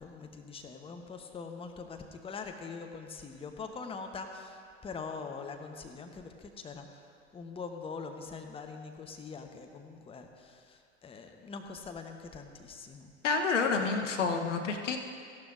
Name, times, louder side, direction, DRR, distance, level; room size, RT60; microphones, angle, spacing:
voice 1, 0.0-6.9 7.3-13.1, left 4 dB, 15° left, 4 dB, 0.9 m, -43 dB
voice 2, 13.2-15.0, left 4 dB, 75° left, 5 dB, 1.0 m, -29 dB
15.5 x 12.0 x 2.5 m, 2.2 s
figure-of-eight pair, 85°, 36 cm